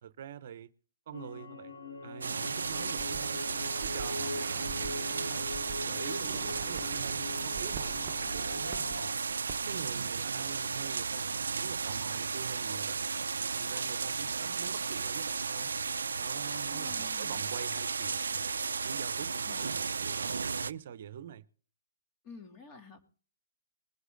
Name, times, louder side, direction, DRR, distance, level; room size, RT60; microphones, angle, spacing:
voice 1, 0.0-0.7 1.1-3.4 3.8-5.5 5.8-9.1 9.7-13.0 13.4-15.7 16.2-18.5 18.8-21.4, right 9 dB, 55° right, 0.8 m, -45 dB
sound 1, 1.1-9.1, left 2 dB, 80° left, 2.8 m, -42 dB
sound 2, 2.2-20.7, right 5 dB, 80° right, 0.5 m, -34 dB
sound 3, 2.7-9.0 9.3-9.6 9.8-9.9, right 11 dB, 30° right, 1.0 m, -47 dB
voice 2, 16.7-17.4 19.4-19.7 22.2-23.0, left 5 dB, 30° left, 3.1 m, -50 dB
21.5 x 8.1 x 3.9 m
hypercardioid pair, 130°, 0 cm